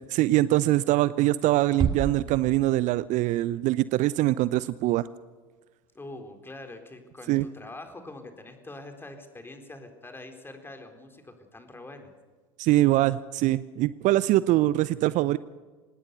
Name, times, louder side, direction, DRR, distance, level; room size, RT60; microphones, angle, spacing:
voice 1, 0.0-5.1 7.3-7.4 12.6-15.4, right 16 dB, 45° right, 18 dB, 0.6 m, -23 dB
Bass drum, 1.8-3.2, right 6 dB, 25° right, 1.5 m, -30 dB
voice 2, 5.9-12.1, left 2 dB, 10° left, 6 dB, 4.2 m, -44 dB
25.5 x 19.5 x 6.9 m, 1.4 s
figure-of-eight pair, 75°, 17 cm